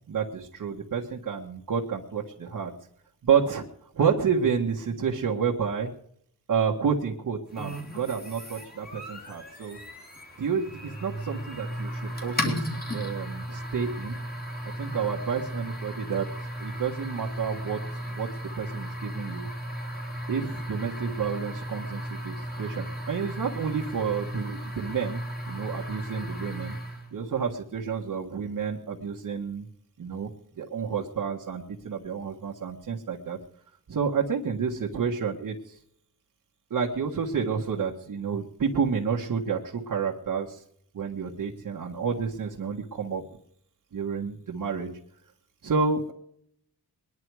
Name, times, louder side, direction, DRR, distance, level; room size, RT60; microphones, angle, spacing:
voice 1, 0.1-2.7 3.2-3.6 3.9-5.9 6.5-9.8 10.4-14.2 14.8-16.3 16.6-17.8 18.1-18.3 18.6-19.5 20.3-26.8 27.1-29.7 30.0-30.3 30.6-33.4 33.9-35.7 36.7-40.6 40.9-43.2 43.9-45.0 45.6-46.1, right 6 dB, 55° right, -1 dB, 1.6 m, -29 dB
sound 1, 7.5-27.1, equal, 25° left, 3.2 m, -35 dB
21.5 x 11.0 x 4.8 m, 0.68 s
wide cardioid pair, 150°, 38 cm